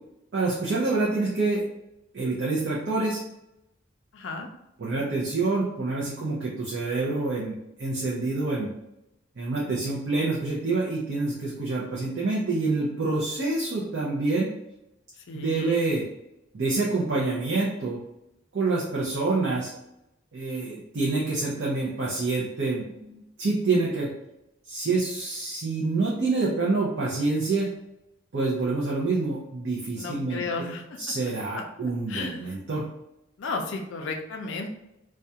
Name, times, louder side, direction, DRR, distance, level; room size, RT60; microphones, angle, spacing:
voice 1, 0.3-1.6 2.1-3.2 4.8-8.7 9.4-14.5 15.3-16.0 16.5-18.0 18.5-19.7 20.3-24.1 24.7-27.7 28.3-30.7 31.0-32.9, right 3 dB, 55° right, -5 dB, 0.5 m, -27 dB
voice 2, 4.1-4.5 15.3-15.8 30.0-30.8 31.5-31.6 32.1-32.4 33.4-34.7, left 3 dB, 65° left, 3 dB, 0.4 m, -33 dB
2.3 x 2.1 x 2.7 m, 0.87 s
head